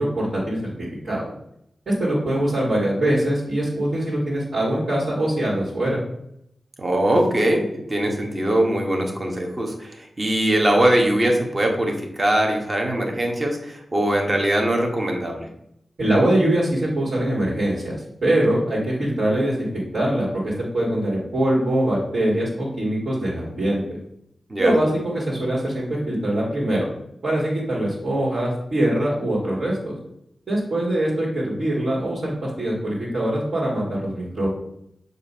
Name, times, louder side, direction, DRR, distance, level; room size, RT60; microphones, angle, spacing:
voice 1, 0.0-1.3 1.9-6.0 16.0-19.7 19.9-23.8 24.6-26.9 27.2-30.0 30.5-34.5, right 1 dB, 60° right, -8 dB, 1.9 m, -23 dB
voice 2, 6.8-15.5 24.5-24.7, right 1 dB, 25° right, 1 dB, 1.2 m, -21 dB
6.7 x 2.6 x 5.5 m, 0.76 s
wide cardioid pair, 90°, 0 cm